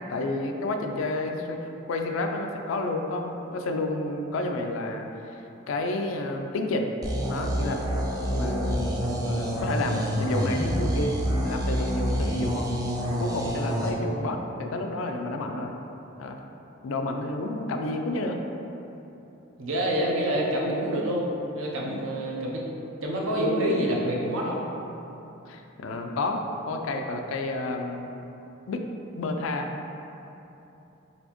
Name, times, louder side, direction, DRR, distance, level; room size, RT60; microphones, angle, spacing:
voice 1, 0.1-6.9 7.3-7.8 8.3-11.2 11.4-12.7 13.2-15.7 16.2-16.4 16.8-18.4 21.8-22.0 25.5-28.1 28.7-28.8 29.2-29.7, left 2 dB, 80° left, 4 dB, 0.4 m, -30 dB
sound 1, 7.0-13.9, equal, 20° right, 0.4 m, -27 dB
voice 2, 19.6-21.3 21.5-22.7 23.0-24.6, right 1 dB, 85° right, -3 dB, 0.7 m, -27 dB
4.1 x 3.3 x 3.0 m, 3.0 s
head